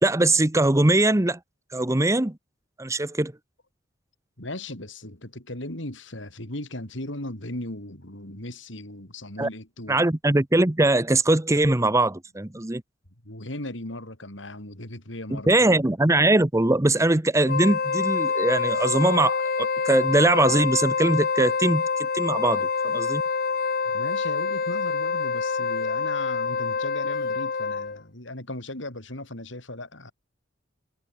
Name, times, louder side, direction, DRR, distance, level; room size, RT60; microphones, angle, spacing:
voice 1, 0.0-1.4 1.7-2.4 2.8-3.3 9.4-9.5 9.9-12.8 15.3-21.8 22.1-23.2, right 2 dB, 15° right, 0.8 m, -21 dB
voice 2, 4.4-10.0 13.2-15.7 23.9-30.1, left 1 dB, 70° left, 5.6 m, -37 dB
Wind instrument woodwind instrument, 17.4-28.0, left 5 dB, 50° left, 1.1 m, -26 dB
head